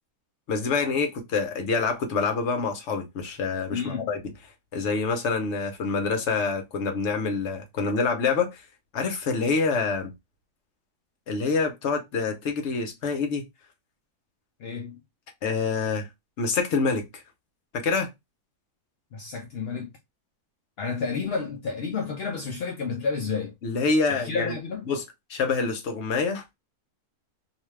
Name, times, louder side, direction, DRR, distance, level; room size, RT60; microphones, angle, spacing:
voice 1, 0.5-4.2 4.7-8.6 8.9-10.1 11.3-13.4 15.4-16.1 16.4-17.2 17.7-18.1 23.6-24.5 24.9-25.0 25.3-26.4, left 4 dB, 55° left, 0.9 m, -26 dB
voice 2, 3.7-4.1 14.6-15.0 19.1-19.9 20.8-23.5 24.1-24.9, left 5 dB, 75° left, 0.5 m, -30 dB
2.8 x 2.3 x 3.1 m
omnidirectional pair, 1.7 m